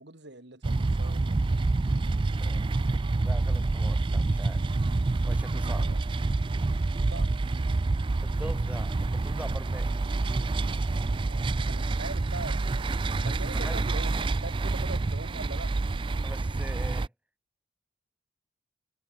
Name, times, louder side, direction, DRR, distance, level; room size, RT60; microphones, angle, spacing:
voice 1, 0.0-1.6 5.7-6.0 6.9-7.3 11.2-15.7, right 2 dB, 60° right, 2.4 m, -42 dB
sound 1, 0.6-17.1, right 3 dB, 25° right, 0.3 m, -27 dB
voice 2, 3.2-4.6 5.2-5.9 8.2-9.9 13.2-13.8 16.2-17.1, right 1 dB, 5° right, 0.8 m, -41 dB
sound 2, 7.7-8.1 8.8-9.5 9.9-10.3 11.2-11.5 12.4-12.9 13.6-14.0, left 1 dB, 60° left, 8.0 m, -59 dB
head